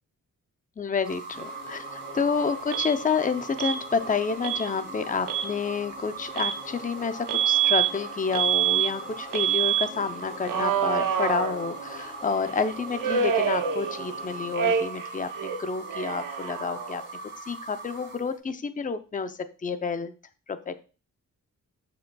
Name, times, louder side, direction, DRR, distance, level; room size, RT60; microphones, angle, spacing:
voice 1, 0.8-17.0 17.5-20.1 20.5-20.7, left 5 dB, 25° left, 9 dB, 0.6 m, -29 dB
sound 1, 1.0-18.4, right 4 dB, 35° right, 2.2 m, -40 dB
sound 2, 1.3-14.5, left 1 dB, ahead, 3.1 m, -45 dB
Alarm, 2.7-2.9 3.6-3.8 4.4-4.6 5.2-5.5 6.4-6.6 7.3-7.9 8.3-8.9 9.3-9.9 10.5-12.0 13.0-14.2 14.5-15.1 15.4-17.1, right 8 dB, 85° right, 0.8 m, -26 dB
13.0 x 5.2 x 2.3 m, 0.34 s
wide cardioid pair, 125°, 31 cm